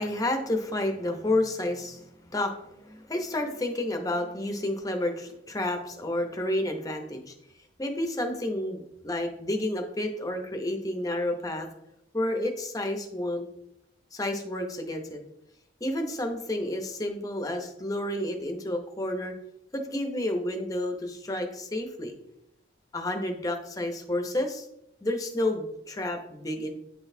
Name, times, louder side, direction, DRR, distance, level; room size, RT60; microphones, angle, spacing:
voice 1, 0.0-7.3 7.8-11.7 12.1-13.5 14.1-15.2 15.8-19.3 19.7-22.1 22.9-24.7 25.0-26.7, left 1 dB, 20° left, 4 dB, 0.7 m, -30 dB
9.2 x 4.0 x 2.7 m, 0.82 s
head